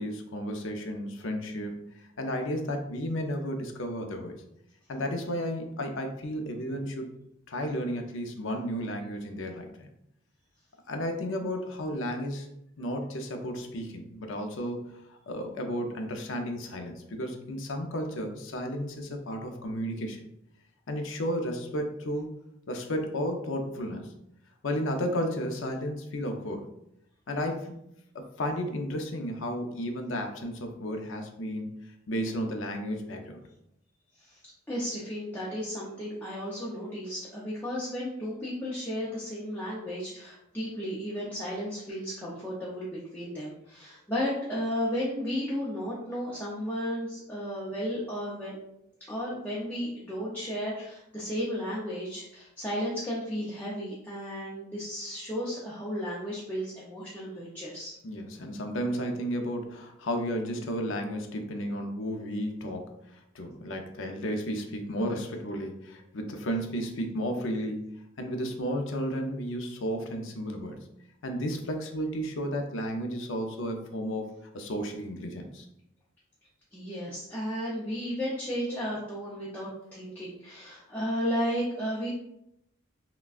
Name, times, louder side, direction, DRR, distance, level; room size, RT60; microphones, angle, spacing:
voice 1, 0.0-4.4 4.9-7.1 7.5-9.9 10.9-12.5 12.8-20.2 20.9-22.3 22.7-24.1 24.6-26.7 27.3-27.8 28.1-33.4 58.0-70.8 71.2-75.7, equal, 70° left, 4 dB, 0.6 m, -33 dB
voice 2, 34.7-48.6 49.1-57.9 76.7-82.1, equal, 10° left, -7 dB, 0.6 m, -34 dB
5.8 x 2.2 x 2.4 m, 0.80 s
head